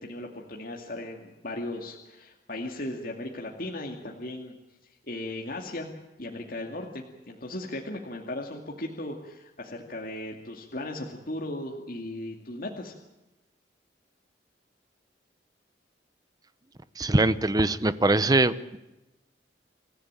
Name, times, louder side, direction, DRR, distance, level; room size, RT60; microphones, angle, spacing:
voice 1, 0.0-4.6 4.8-5.9 6.2-12.9, left 1 dB, 50° left, 0 dB, 2.3 m, -37 dB
voice 2, 17.0-18.8, right 2 dB, 20° right, 14 dB, 0.8 m, -22 dB
27.5 x 14.5 x 8.8 m, 1.0 s
head